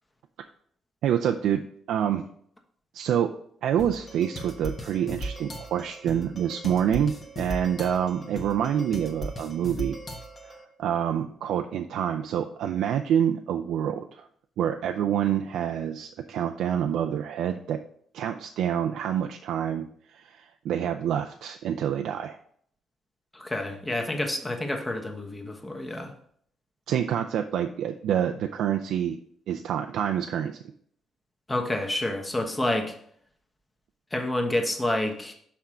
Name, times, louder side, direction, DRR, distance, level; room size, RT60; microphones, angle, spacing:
voice 1, 1.0-1.6 1.9-2.3 2.9-3.3 3.6-10.0 10.4-14.3 14.6-17.8 18.1-22.4 26.9-29.2 29.5-30.6, right 9 dB, 80° right, 5 dB, 0.4 m, -27 dB
sound 1, 3.8-10.6, right 1 dB, 35° left, 1.2 m, -38 dB
voice 2, 23.3-26.1 31.5-32.9 34.1-35.3, left 1 dB, 20° left, 4 dB, 1.2 m, -28 dB
5.9 x 4.4 x 4.9 m, 0.64 s
cardioid pair, 90°, 0 cm